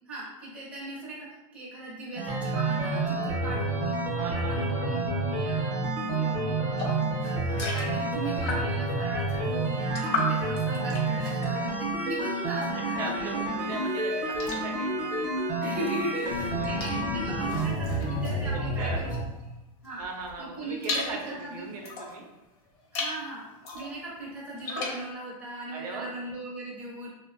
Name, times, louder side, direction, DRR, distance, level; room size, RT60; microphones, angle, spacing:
voice 1, 0.1-5.7 6.1-6.9 7.2-13.3 15.6-19.2 19.8-20.1 20.4-21.8 22.9-23.4 23.7-27.1, right 1 dB, 5° right, -6 dB, 0.5 m, -38 dB
sound 1, 2.2-19.2, right 2 dB, 50° right, 0.7 m, -29 dB
voice 2, 4.1-5.3 13.0-15.2 16.2-17.0 18.5-19.0 20.0-22.2 25.7-26.1, right 3 dB, 85° right, 0 dB, 0.6 m, -39 dB
sound 2, 6.8-8.9 9.3-12.7 13.1-19.4 19.8-22.2 22.7-23.2 23.6-25.1, left 3 dB, 50° left, 0.7 m, -37 dB
Boom, 16.2-19.4, left 3 dB, 85° left, 0.5 m, -37 dB
2.6 x 2.1 x 2.5 m, 0.97 s
supercardioid pair, 160°, 19 cm